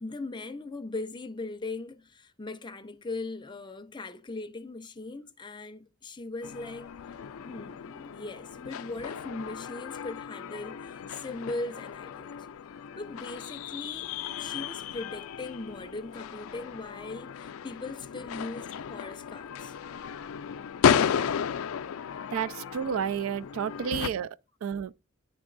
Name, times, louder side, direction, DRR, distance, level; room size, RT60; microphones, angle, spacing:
voice 1, 0.0-6.9 7.4-12.5 13.0-14.1 14.4-19.7, left 2 dB, 20° left, 0.6 m, -39 dB
sound 1, 6.4-24.1, left 7 dB, 80° left, 0.4 m, -34 dB
voice 2, 22.3-24.3 24.6-24.9, right 7 dB, 75° right, 0.3 m, -31 dB
10.0 x 3.5 x 3.9 m
head